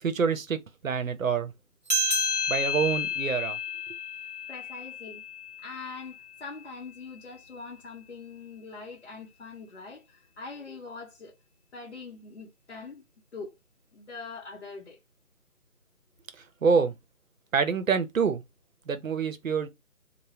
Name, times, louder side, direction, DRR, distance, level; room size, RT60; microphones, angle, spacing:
voice 1, 0.0-1.5 2.5-3.6 16.4-16.9 17.5-18.4 18.9-19.7, right 6 dB, 65° right, 0.7 m, -26 dB
sound 1, 1.9-6.8, left 3 dB, 30° right, 0.7 m, -31 dB
voice 2, 4.5-5.2 5.6-11.4 11.7-13.0 13.3-13.6 13.9-15.0, left 4 dB, 50° left, 0.8 m, -43 dB
3.4 x 2.1 x 2.7 m
figure-of-eight pair, 165°, 44 cm